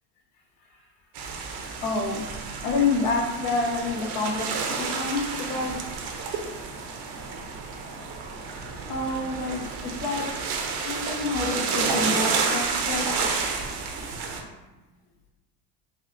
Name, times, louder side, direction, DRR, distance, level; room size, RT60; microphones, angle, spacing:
sound 1, 1.2-14.4, right 4 dB, 60° right, 0.7 m, -30 dB
voice 1, 1.8-2.3 2.6-5.7 8.9-13.1, left 3 dB, 80° left, 0 dB, 0.9 m, -28 dB
4.1 x 2.6 x 2.5 m, 1.1 s
supercardioid pair, 100°, 47 cm